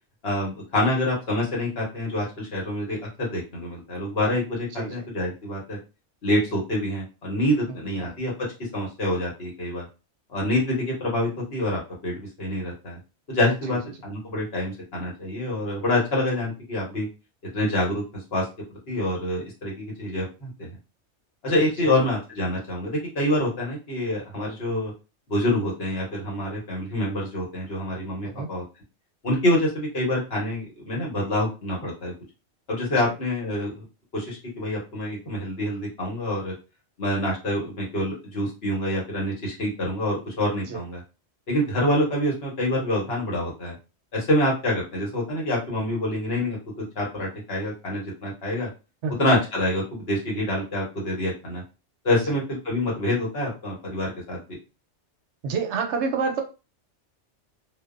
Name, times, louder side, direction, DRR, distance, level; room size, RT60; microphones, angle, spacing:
voice 1, 0.2-5.8 6.2-8.3 8.7-9.8 10.3-13.0 13.3-17.1 17.5-18.0 18.3-20.5 21.4-24.9 25.3-28.6 29.2-32.1 32.7-33.8 34.1-36.5 37.0-41.0 41.5-43.7 44.1-46.6 46.9-48.7 49.2-51.6 52.0-54.4, left 1 dB, 60° left, -2 dB, 1.2 m, -26 dB
voice 2, 4.7-5.0 8.0-8.2 13.7-13.8 21.8-21.9 28.2-28.5 40.7-40.8 49.0-49.3 52.2-52.4 55.4-56.4, right 5 dB, 75° right, 4 dB, 0.9 m, -28 dB
2.7 x 2.0 x 2.4 m, 0.30 s
omnidirectional pair, 1.2 m